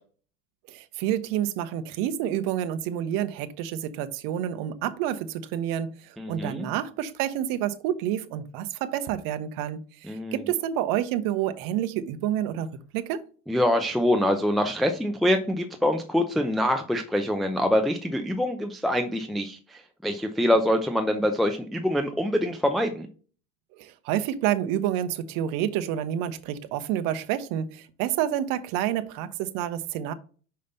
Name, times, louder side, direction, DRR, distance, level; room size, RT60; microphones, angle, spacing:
voice 1, 0.7-12.7 12.9-13.2 23.8-30.1, right 11 dB, 55° right, 0.9 m, -29 dB
voice 2, 6.2-6.7 10.0-10.4 13.5-23.1, left 1 dB, ahead, 0.6 m, -25 dB
5.7 x 5.1 x 3.9 m
hypercardioid pair, 90°, 40 cm